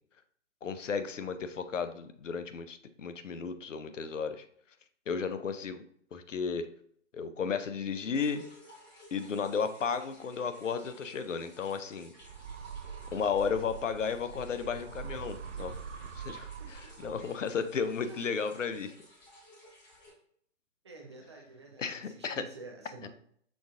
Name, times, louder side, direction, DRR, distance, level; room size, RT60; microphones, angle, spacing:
voice 1, 0.6-4.4 5.1-5.8 6.1-6.7 7.1-8.4 9.1-12.1 13.1-15.8 16.2-18.9 21.8-22.4, left 6 dB, 80° left, 10 dB, 0.6 m, -34 dB
sound 1, 8.1-20.1, left 1 dB, 15° left, 1.0 m, -56 dB
sound 2, 12.2-17.5, right 7 dB, 75° right, 0.5 m, -44 dB
voice 2, 16.3-16.7 18.1-18.2 18.6-18.7 20.8-23.1, right 2 dB, 25° right, 1 dB, 0.5 m, -49 dB
6.1 x 2.5 x 3.5 m, 0.63 s
figure-of-eight pair, 145°, 37 cm